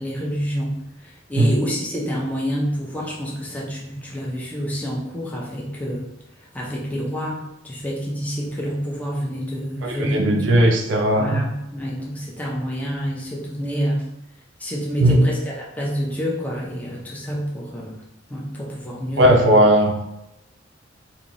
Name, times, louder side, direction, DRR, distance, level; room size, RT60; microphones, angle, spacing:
voice 1, 0.0-6.1 6.5-10.6 11.2-14.0 14.6-18.0 18.3-19.4, equal, 10° left, -4 dB, 0.6 m, -28 dB
voice 2, 9.8-11.4 15.0-15.2 19.2-20.0, right 1 dB, 65° right, 1 dB, 0.5 m, -17 dB
3.7 x 2.7 x 3.0 m, 0.89 s
head